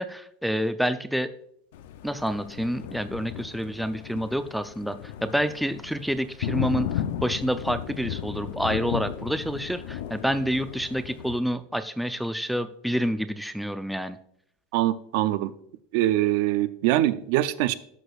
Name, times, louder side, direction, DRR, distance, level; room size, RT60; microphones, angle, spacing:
voice 1, 0.0-1.3 2.0-14.2, equal, ahead, 10 dB, 0.4 m, -28 dB
Thunder, 1.7-11.4, left 10 dB, 80° left, 0.5 m, -35 dB
voice 2, 14.7-15.5 15.9-17.7, right 14 dB, 65° right, 14 dB, 0.4 m, -23 dB
11.5 x 6.2 x 2.4 m, 0.69 s
supercardioid pair, 125°, 0 cm